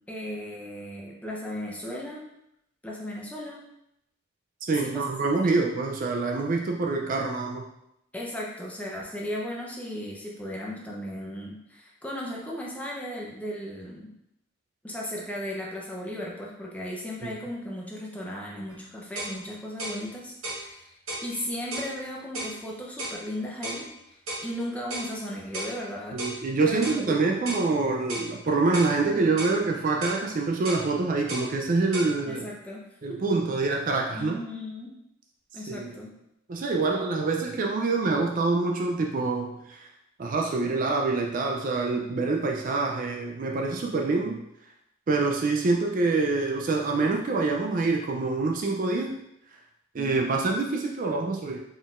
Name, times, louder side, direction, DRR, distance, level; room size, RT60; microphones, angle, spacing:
voice 1, 0.1-2.2 2.8-3.6 4.8-5.0 5.4-5.5 8.1-14.1 14.8-20.9 21.2-26.2 26.6-27.2 32.3-32.8 33.1-33.2 34.1-35.0 35.5-36.1 50.0-50.2, left 1 dB, 5° left, -3 dB, 0.6 m, -36 dB
voice 2, 4.6-7.6 26.1-32.5 33.0-34.4 35.7-35.9 36.5-39.9 40.2-44.4 45.1-49.2 49.9-51.6, right 3 dB, 40° right, 1 dB, 0.3 m, -26 dB
sound 1, 18.7-18.8 19.2-19.4 19.8-20.0 20.4-20.6 21.1-21.3 21.7-21.9 22.3-22.6 23.0-23.2 23.6-23.8 24.3-24.5 24.9-25.1 25.5-25.7 26.2-26.4 26.8-27.0 27.5-27.7 28.1-28.3 28.7-28.9 29.4-29.6 30.0-30.2 30.6-30.9 31.3-31.5 31.9-32.1, right 1 dB, 85° right, 1.0 m, -34 dB
4.1 x 3.9 x 2.4 m, 0.83 s
head